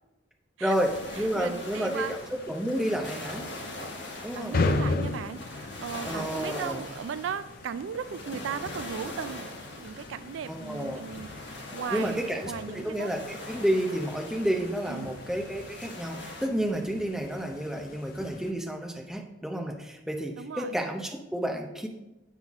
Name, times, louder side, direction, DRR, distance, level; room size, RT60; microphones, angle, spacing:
voice 1, 0.6-3.5 4.2-4.6 6.0-6.8 10.5-11.0 11.9-21.9, equal, 5° right, 2 dB, 0.6 m, -30 dB
sound 1, 0.7-16.5, left 2 dB, 70° left, 1.2 m, -42 dB
sound 2, 0.8-18.5, left 3 dB, 50° left, 0.5 m, -37 dB
voice 2, 1.4-2.2 4.3-5.4 5.8-9.5 9.8-11.3 11.7-13.1 14.9-15.1 20.4-20.8, right 7 dB, 80° right, 13 dB, 0.3 m, -36 dB
7.7 x 5.6 x 3.6 m, 0.99 s
head